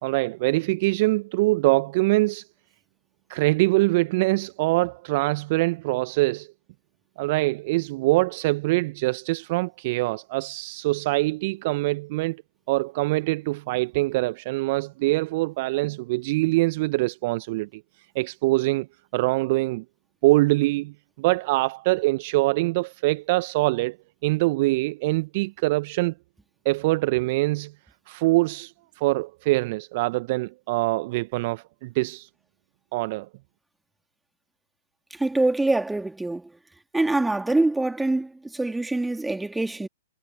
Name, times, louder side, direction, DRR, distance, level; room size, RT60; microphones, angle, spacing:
voice 1, 0.0-2.4 3.3-6.5 7.2-12.4 12.7-17.8 18.1-18.9 19.1-19.8 20.2-24.0 24.2-26.1 26.6-27.7 28.1-32.3 32.9-33.3, right 21 dB, 40° right, 1.0 m, -24 dB
voice 2, 35.1-36.5 36.9-39.9, right 2 dB, 5° right, 2.9 m, -24 dB
figure-of-eight pair, 115°, 0 cm